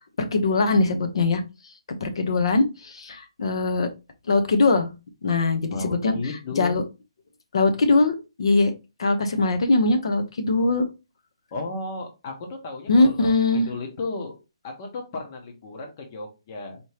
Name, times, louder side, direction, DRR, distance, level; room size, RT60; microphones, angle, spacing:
voice 1, 0.2-1.4 2.0-3.9 4.3-4.9 5.2-6.1 6.6-6.8 7.5-8.7 9.0-10.9 12.9-13.7, left 3 dB, 60° left, 8 dB, 0.7 m, -21 dB
voice 2, 5.7-6.8 11.5-14.3 14.6-16.8, left 3 dB, 30° left, 2 dB, 0.9 m, -34 dB
4.3 x 2.8 x 3.3 m, 0.27 s
hypercardioid pair, 170°, 3 cm